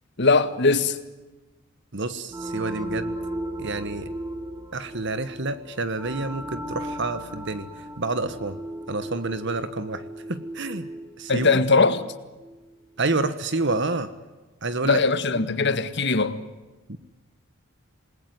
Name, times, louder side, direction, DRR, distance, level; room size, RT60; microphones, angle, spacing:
voice 1, 0.2-1.0 11.3-12.0 14.8-16.4, left 4 dB, 55° left, 1.8 m, -20 dB
voice 2, 1.9-3.2 3.6-4.1 4.7-7.7 8.0-8.6 8.9-10.0 10.3-10.9 11.2-11.5 13.0-14.1 14.6-15.0 15.3-15.5 16.9-17.0, right 3 dB, 55° right, 1.4 m, -28 dB
sound 1, 2.3-12.7, right 1 dB, 15° right, 2.9 m, -36 dB
28.0 x 20.5 x 9.4 m
head